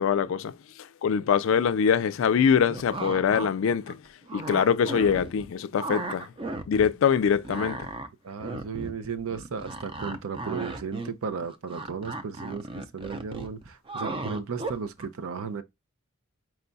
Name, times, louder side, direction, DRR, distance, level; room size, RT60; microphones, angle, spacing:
voice 1, 0.0-4.0 4.3-6.3 6.7-7.9, left 7 dB, 65° left, 0.3 m, -24 dB
sound 1, 2.7-3.5 3.9-5.5 5.8-6.9 7.2-15.1, right 2 dB, 25° right, 0.5 m, -36 dB
voice 2, 8.2-15.6, right 5 dB, 80° right, 0.5 m, -35 dB
4.6 x 2.3 x 3.9 m
head